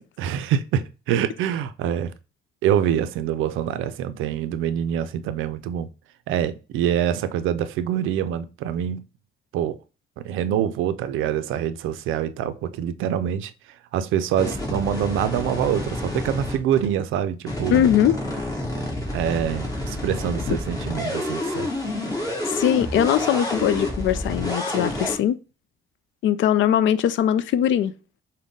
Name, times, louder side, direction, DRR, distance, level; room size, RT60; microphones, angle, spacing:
voice 1, 0.2-2.1 2.6-5.9 6.3-9.0 9.5-9.8 10.2-13.5 13.9-17.9 19.1-21.7, right 9 dB, 90° right, 0.4 m, -25 dB
sound 1, 14.4-16.9 17.5-25.2, left 1 dB, 20° left, 1.6 m, -29 dB
voice 2, 17.7-18.2 20.5-20.6 22.5-25.4 26.2-27.9, left 10 dB, 75° left, 0.4 m, -20 dB
5.2 x 2.2 x 3.6 m
cardioid pair, 90°, 20 cm